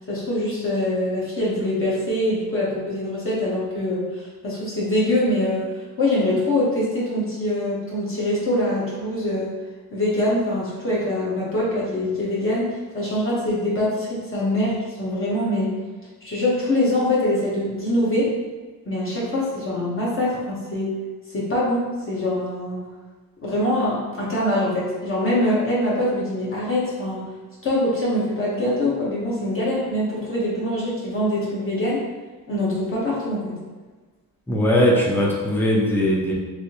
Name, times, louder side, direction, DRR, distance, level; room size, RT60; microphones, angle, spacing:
voice 1, 0.1-5.7 6.0-9.5 9.9-15.7 16.2-18.3 18.8-20.9 21.3-22.8 23.4-27.2 27.6-32.0 32.5-33.6, left 1 dB, 35° left, -7 dB, 0.9 m, -24 dB
voice 2, 34.5-36.3, equal, 5° left, -3 dB, 0.5 m, -19 dB
3.4 x 2.6 x 2.9 m, 1.3 s
cardioid pair, 130°, 39 cm